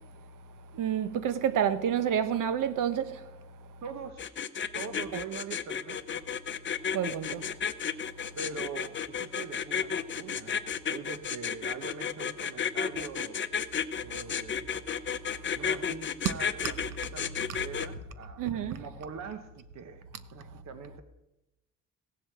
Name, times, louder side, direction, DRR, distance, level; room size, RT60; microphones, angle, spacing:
voice 1, 0.7-3.2 6.9-7.4 18.4-18.8, right 9 dB, 85° right, 1.0 m, -29 dB
voice 2, 3.8-4.4 4.7-6.3 7.3-7.7 8.4-10.6 10.8-13.4 14.0-14.7 15.5-20.1 20.3-21.0, right 6 dB, 60° right, 1.0 m, -43 dB
sound 1, 4.2-17.9, left 7 dB, 40° left, 0.7 m, -32 dB
16.0 x 7.8 x 7.8 m
cardioid pair, 130°, 31 cm